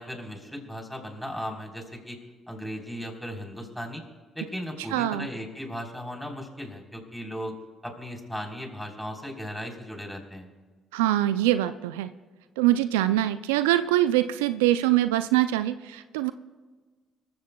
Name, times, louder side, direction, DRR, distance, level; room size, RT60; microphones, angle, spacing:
voice 1, 0.0-2.2 2.5-4.0 4.3-7.5 7.8-10.5, equal, ahead, 1 dB, 3.8 m, -37 dB
voice 2, 4.9-5.3 10.9-12.1 12.6-16.3, right 14 dB, 85° right, 13 dB, 0.4 m, -23 dB
25.5 x 15.0 x 2.3 m, 1.4 s
hypercardioid pair, 50°, 0 cm